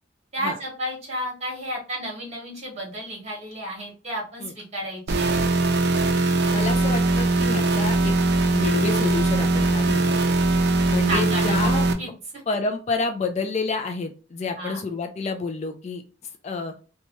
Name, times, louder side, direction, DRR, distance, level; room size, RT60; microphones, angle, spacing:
voice 1, 0.3-5.3 11.1-11.7 12.0-12.1 14.6-14.8, right 1 dB, 35° right, -2 dB, 1.3 m, -32 dB
sound 1, 5.1-11.9, right 2 dB, 60° right, 0.4 m, -21 dB
voice 2, 6.5-8.1 8.5-10.3 10.9-11.9 12.5-16.0 16.4-16.7, left 4 dB, 35° left, 6 dB, 0.3 m, -29 dB
2.8 x 2.2 x 2.9 m, 0.35 s
head